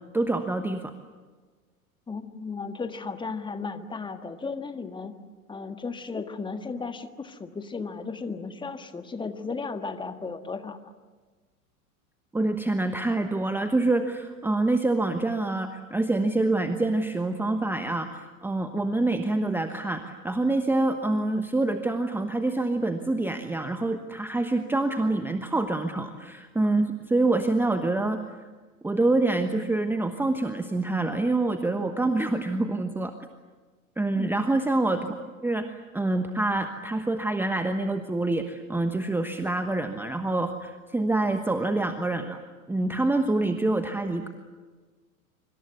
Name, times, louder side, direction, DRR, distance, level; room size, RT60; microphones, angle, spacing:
voice 1, 0.1-0.9 12.3-28.2 28.8-33.1 34.0-35.2 35.4-42.4 42.7-44.3, right 2 dB, 5° right, 8 dB, 1.2 m, -26 dB
voice 2, 2.1-5.1 5.5-10.8 34.1-34.3, left 4 dB, 10° left, 8 dB, 1.6 m, -35 dB
25.5 x 25.5 x 8.3 m, 1.4 s
figure-of-eight pair, 90°, 43 cm